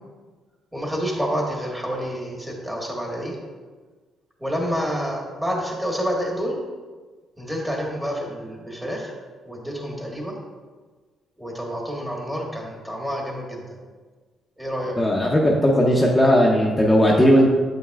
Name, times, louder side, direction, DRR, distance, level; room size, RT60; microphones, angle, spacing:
voice 1, 0.7-3.4 4.4-6.6 7.4-9.2 9.4-10.3 11.4-13.8 14.6-14.9, equal, 10° right, -1 dB, 1.6 m, -28 dB
voice 2, 15.0-17.5, equal, 15° left, -3 dB, 0.8 m, -17 dB
8.3 x 5.3 x 2.4 m, 1.4 s
cardioid pair, 90°, 0 cm